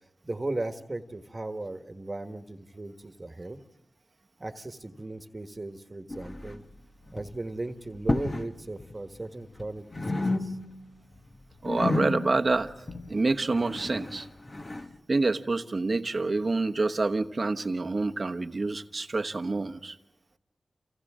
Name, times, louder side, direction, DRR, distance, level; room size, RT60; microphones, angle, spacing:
voice 1, 0.2-3.6 4.4-6.6 7.1-10.6, right 2 dB, 35° right, 7 dB, 1.5 m, -37 dB
sound 1, 6.1-6.8 7.0-7.4 7.9-8.5 8.8-9.7 9.9-10.9 11.2-14.9, left 2 dB, 40° left, 1.5 m, -32 dB
voice 2, 11.6-12.7 13.1-14.3 15.1-20.0, right 3 dB, 50° right, 7 dB, 1.1 m, -27 dB
29.5 x 28.0 x 3.7 m, 0.93 s
cardioid pair, 50°, 0 cm